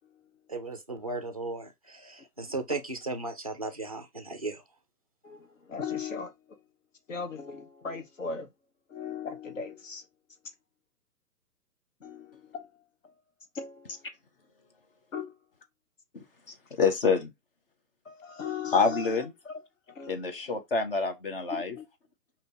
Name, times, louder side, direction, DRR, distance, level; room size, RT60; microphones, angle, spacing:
voice 1, 0.5-4.6, right 3 dB, 25° right, 0.4 m, -36 dB
voice 2, 5.2-6.6 7.1-8.5 8.9-10.0 12.0-13.1 13.5-14.0 15.1-15.4 18.0-19.6 19.9-20.2 21.5-21.8, left 6 dB, 55° left, 1.2 m, -38 dB
voice 3, 16.1-17.3 18.7-19.3 20.1-21.8, left 5 dB, 35° left, 0.9 m, -27 dB
6.4 x 2.9 x 2.8 m
figure-of-eight pair, 130°, 48 cm